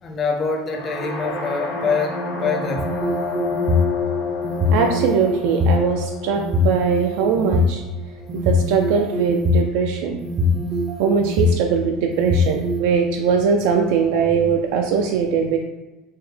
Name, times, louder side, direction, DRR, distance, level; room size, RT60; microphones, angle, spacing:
voice 1, 0.0-3.0, left 4 dB, 30° left, 3 dB, 0.5 m, -25 dB
sound 1, 0.7-8.6, left 4 dB, 85° left, 0.8 m, -29 dB
sound 2, 2.8-3.9 4.4-5.7 6.4-7.7 8.3-9.7 10.2-11.6 12.1-12.8, left 2 dB, 30° right, 0.5 m, -21 dB
voice 2, 4.7-7.8 8.3-10.2 11.0-15.6, right 6 dB, 75° right, 2 dB, 0.3 m, -21 dB
4.5 x 2.1 x 3.3 m, 1.1 s
cardioid pair, 155°, 0 cm